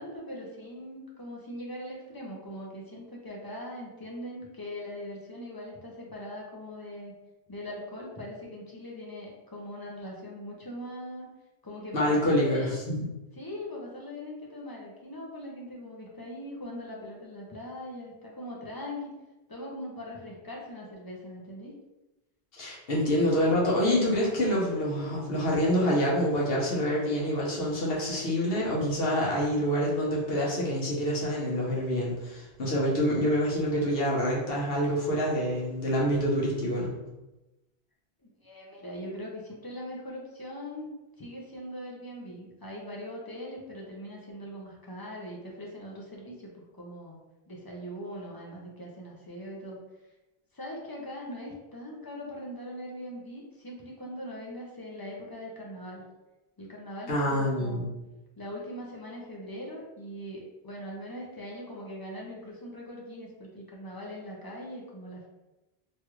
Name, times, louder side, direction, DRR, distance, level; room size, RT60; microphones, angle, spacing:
voice 1, 0.0-7.1 7.5-11.3 11.6-12.7 13.4-19.1 19.5-21.7 38.2-47.2 47.5-49.8 50.5-56.0 56.6-57.9 58.4-65.3, left 1 dB, 30° left, -3 dB, 0.4 m, -41 dB
voice 2, 11.9-13.0 22.6-36.9 57.1-57.9, equal, 70° left, -4 dB, 1.1 m, -26 dB
3.1 x 2.4 x 3.0 m, 1.0 s
omnidirectional pair, 1.0 m